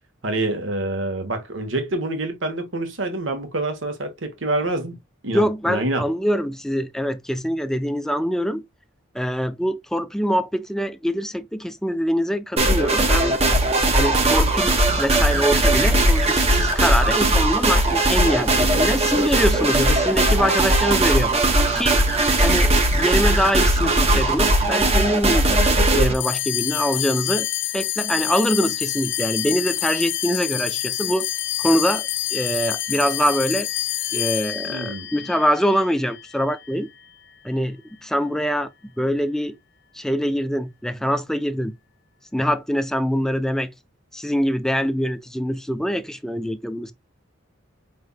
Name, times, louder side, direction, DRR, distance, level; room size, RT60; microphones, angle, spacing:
voice 1, 0.2-5.0 5.2-6.1 34.7-35.1, right 2 dB, 70° right, 1.2 m, -26 dB
voice 2, 5.3-8.6 9.1-13.4 13.9-21.3 21.7-22.0 22.4-25.5 25.9-27.5 27.7-31.3 31.6-33.7 34.1-36.9 37.4-38.7 39.0-39.5 39.9-41.7 42.3-43.7 44.1-46.9, equal, 5° left, 0.4 m, -24 dB
sound 1, 12.6-26.1, right 1 dB, 30° right, 1.0 m, -19 dB
sound 2, 26.1-36.8, left 13 dB, 65° left, 0.6 m, -27 dB
5.3 x 3.3 x 2.2 m
head